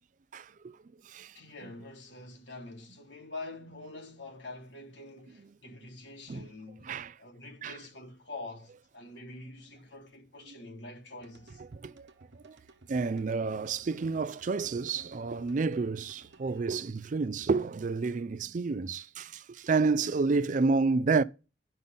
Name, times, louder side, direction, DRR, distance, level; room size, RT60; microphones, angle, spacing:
voice 1, 0.3-0.8 1.0-1.3 6.3-6.5 6.8-7.1 7.6-7.7 10.5-10.6 11.8-12.1 12.4-12.6 12.9-21.2, right 4 dB, 45° right, 0.4 m, -30 dB
voice 2, 1.3-6.9 7.2-11.6, left 2 dB, 85° left, 3.2 m, -45 dB
sound 1, 11.2-16.6, right 2 dB, 80° right, 1.0 m, -56 dB
12.0 x 5.4 x 5.3 m
head